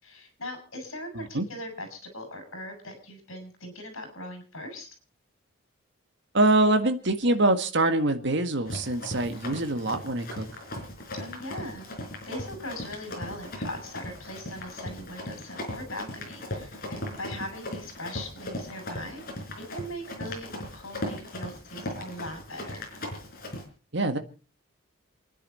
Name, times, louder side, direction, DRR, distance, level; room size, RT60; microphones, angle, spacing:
voice 1, 0.0-4.9 11.1-11.9 12.3-19.2 19.6-22.9, left 1 dB, 70° left, 6 dB, 6.3 m, -40 dB
voice 2, 6.3-10.5 23.9-24.2, right 2 dB, 55° right, 7 dB, 1.7 m, -24 dB
Run, 8.7-23.6, left 1 dB, 45° left, 4.6 m, -38 dB
28.5 x 10.0 x 4.2 m, 0.35 s
head